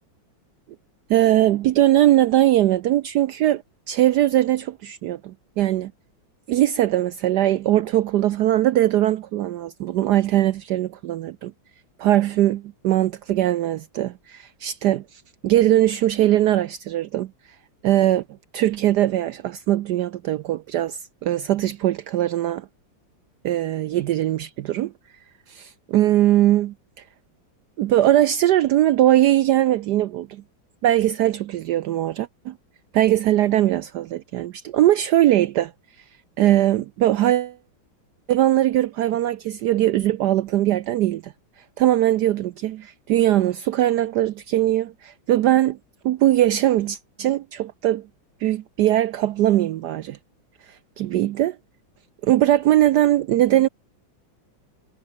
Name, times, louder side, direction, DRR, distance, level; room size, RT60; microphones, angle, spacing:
voice 1, 1.1-3.6 3.9-5.9 6.5-11.5 12.0-17.3 17.8-18.2 18.5-22.7 23.4-24.9 25.5-26.7 27.8-30.4 30.8-32.5 32.9-35.7 36.4-37.6 38.3-41.3 41.8-45.8 46.0-48.0 48.4-50.2 51.0-51.6 52.2-53.7, right 13 dB, 70° right, 1.0 m, -20 dB
omnidirectional pair, 2.1 m